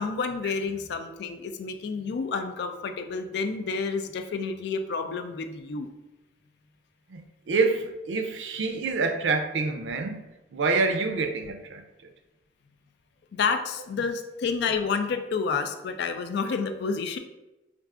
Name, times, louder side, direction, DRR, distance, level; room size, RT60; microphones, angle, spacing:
voice 1, 0.0-5.9 13.3-17.2, left 5 dB, 65° left, 7 dB, 0.3 m, -29 dB
voice 2, 7.1-10.3 10.5-11.8, right 4 dB, 80° right, 6 dB, 0.4 m, -27 dB
4.6 x 2.4 x 2.4 m, 1.0 s
head